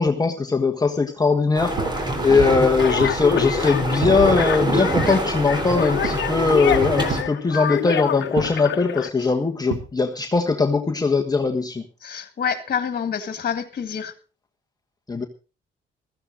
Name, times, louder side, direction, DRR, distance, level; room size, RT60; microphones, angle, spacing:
voice 1, 0.0-11.8 15.1-15.2, left 4 dB, 20° left, 3 dB, 1.4 m, -20 dB
sound 1, 1.5-7.2, right 1 dB, 20° right, 3.6 m, -25 dB
sound 2, 1.8-2.0 2.6-3.3 4.0-4.3 4.9-5.2 6.0-6.4 7.1-7.4 8.3-8.6 9.7-9.9, right 8 dB, 85° right, 1.6 m, -31 dB
sound 3, 2.8-9.1, left 10 dB, 65° left, 1.1 m, -27 dB
voice 2, 12.0-14.1, left 7 dB, 50° left, 10 dB, 2.0 m, -27 dB
15.0 x 14.5 x 3.9 m, 0.35 s
cardioid pair, 90°, 20 cm